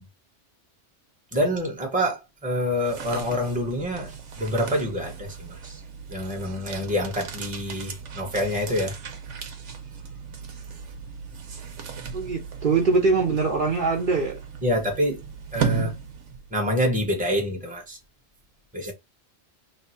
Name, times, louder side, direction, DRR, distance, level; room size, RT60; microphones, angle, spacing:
voice 1, 1.3-5.8 6.1-8.9 14.6-15.2 15.5-15.9 16.5-18.0 18.7-18.9, equal, 10° right, 0.9 m, -26 dB
sound 1, 2.6-16.7, right 6 dB, 80° right, 1.1 m, -36 dB
voice 2, 12.1-14.4, right 4 dB, 50° right, 0.8 m, -23 dB
3.1 x 2.3 x 4.2 m
omnidirectional pair, 1.2 m